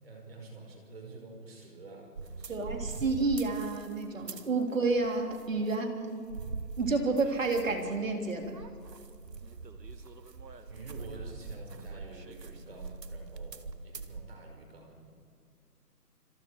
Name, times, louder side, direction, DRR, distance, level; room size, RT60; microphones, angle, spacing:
voice 1, 0.0-2.8 9.7-10.2 10.7-15.1, right 2 dB, 35° right, 2 dB, 4.8 m, -49 dB
sound 1, 2.2-4.5 4.8-5.8 6.0-14.3, right 4 dB, 80° right, 2.0 m, -43 dB
voice 2, 2.5-6.3 6.8-8.6, right 3 dB, 50° right, 3 dB, 3.6 m, -30 dB
27.0 x 27.0 x 4.7 m, 2.4 s
hypercardioid pair, 175°, 48 cm